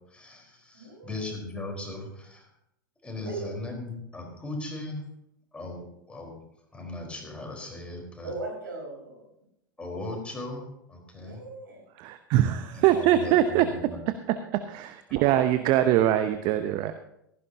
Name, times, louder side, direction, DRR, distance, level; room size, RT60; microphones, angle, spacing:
voice 1, 0.1-2.5 3.0-5.0 5.5-6.4 6.7-8.3 9.8-11.4 12.7-14.0, left 2 dB, 10° left, 1 dB, 4.3 m, -38 dB
voice 2, 0.7-1.1 3.2-3.5 8.2-9.3 11.1-11.9, right 3 dB, 70° right, 0 dB, 5.1 m, -38 dB
voice 3, 12.0-13.7 14.5-16.9, right 12 dB, 40° right, 10 dB, 0.8 m, -23 dB
16.5 x 15.0 x 2.8 m, 0.79 s
figure-of-eight pair, 85°, 11 cm